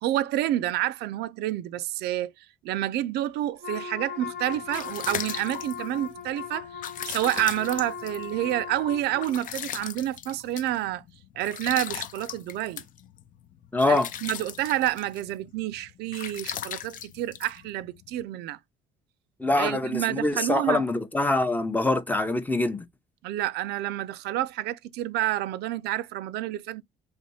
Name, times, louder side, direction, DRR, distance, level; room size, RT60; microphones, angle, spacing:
voice 1, 0.0-11.0 11.4-12.8 13.9-18.6 19.6-20.8 23.2-26.8, right 14 dB, 80° right, 0.4 m, -29 dB
Wind instrument woodwind instrument, 3.6-9.4, left 7 dB, 85° left, 1.9 m, -38 dB
sound 1, 4.3-18.2, left 9 dB, 50° left, 0.5 m, -39 dB
voice 2, 13.7-14.1 19.4-22.9, left 2 dB, 10° left, 0.6 m, -24 dB
3.4 x 3.0 x 4.1 m
cardioid pair, 110°, 17 cm